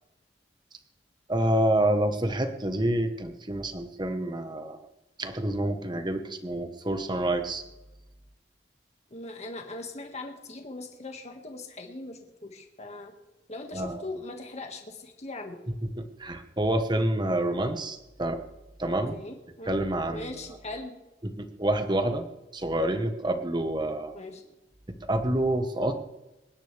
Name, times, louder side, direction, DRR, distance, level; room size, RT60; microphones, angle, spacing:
voice 1, 1.3-4.8 5.2-7.6 13.7-14.0 16.0-18.4 18.8-19.2 19.7-20.3 21.2-22.2 22.5-24.1 25.0-25.9, right 1 dB, 25° right, 7 dB, 1.2 m, -28 dB
voice 2, 9.1-13.1 13.5-15.6 19.1-19.7 20.1-20.9 24.1-24.4, left 2 dB, 40° left, 3 dB, 1.9 m, -40 dB
26.5 x 10.0 x 3.4 m, 1.0 s
head